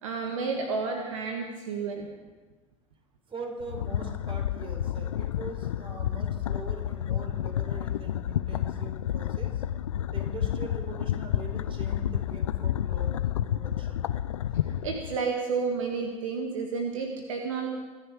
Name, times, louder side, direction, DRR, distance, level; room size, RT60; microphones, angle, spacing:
voice 1, 0.0-2.1 14.8-17.7, right 4 dB, 75° right, 2 dB, 1.7 m, -31 dB
voice 2, 3.3-9.6 10.1-14.0, right 3 dB, 30° right, 3 dB, 4.2 m, -42 dB
sound 1, 3.6-15.2, left 11 dB, 75° left, 0.6 m, -30 dB
25.5 x 10.0 x 5.0 m, 1.3 s
figure-of-eight pair, 70°, 17 cm